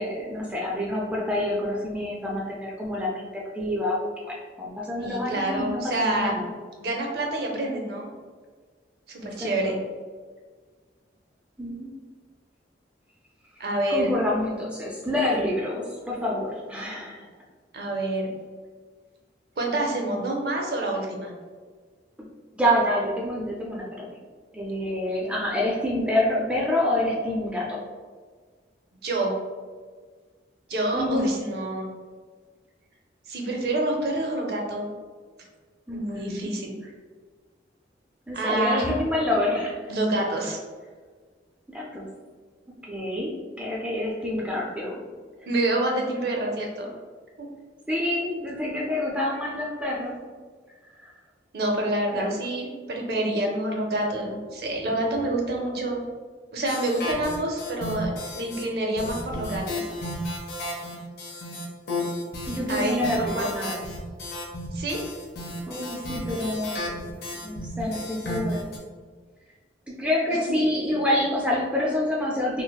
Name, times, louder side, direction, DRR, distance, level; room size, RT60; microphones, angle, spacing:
voice 1, 0.0-6.4 9.2-9.8 11.6-11.9 13.9-17.3 22.2-22.3 22.6-24.2 24.5-27.8 30.9-31.3 35.9-36.5 38.3-39.9 41.7-42.1 42.8-45.0 47.9-50.2 51.0-51.1 52.2-52.4 62.5-63.8 65.7-67.0 67.4-68.7 69.9-72.6, left 1 dB, 5° right, -3 dB, 0.3 m, -27 dB
voice 2, 5.0-6.4 6.8-8.1 9.1-9.8 13.6-14.2 17.7-18.3 19.6-21.3 29.0-29.3 30.7-31.9 33.3-34.9 35.9-36.7 38.3-39.0 39.9-40.6 45.5-46.9 47.4-47.5 51.5-56.0 56.5-59.9 62.7-63.0 63.3-63.5 64.7-65.0 70.4-70.6, right 1 dB, 60° right, 0 dB, 0.6 m, -27 dB
sound 1, 56.7-58.6 59.0-68.8, left 1 dB, 60° left, 0.6 m, -33 dB
3.9 x 2.0 x 2.3 m, 1.5 s
head